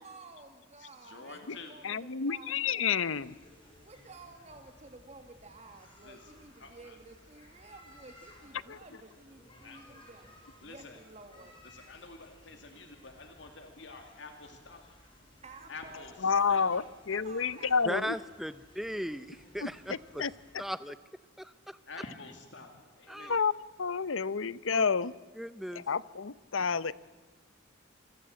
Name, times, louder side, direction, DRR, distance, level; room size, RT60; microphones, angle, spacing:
voice 1, 0.0-3.2 3.8-10.3 10.6-11.6 15.4-16.1 16.3-18.1, right 3 dB, 35° right, 1.9 m, -52 dB
voice 2, 0.8-1.8 6.0-7.0 8.4-8.5 9.6-9.9 10.6-11.0 11.6-15.0 15.7-16.7 21.9-23.4, left 3 dB, 60° left, 2.4 m, -48 dB
voice 3, 1.8-3.3 8.7-8.8 16.2-18.2 19.6-20.6 23.3-25.1 25.7-26.9, left 6 dB, 80° left, 0.8 m, -30 dB
sound 1, 3.1-20.5, left 1 dB, 25° left, 6.0 m, -59 dB
voice 4, 17.9-20.2 20.6-21.0 21.4-21.8 23.1-23.4 24.7-24.8 25.4-25.8, equal, ahead, 0.7 m, -37 dB
27.5 x 23.0 x 7.7 m
head